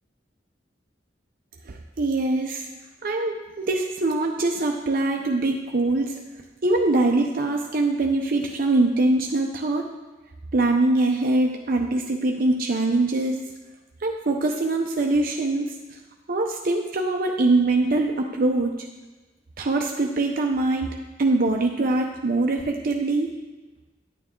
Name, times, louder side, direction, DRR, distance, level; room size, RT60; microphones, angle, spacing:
voice 1, 1.7-2.7 3.0-6.1 6.6-9.8 10.5-13.4 14.0-15.7 16.3-18.7 19.6-23.3, right 2 dB, 55° right, 2 dB, 0.7 m, -23 dB
9.9 x 9.3 x 3.7 m, 1.1 s
head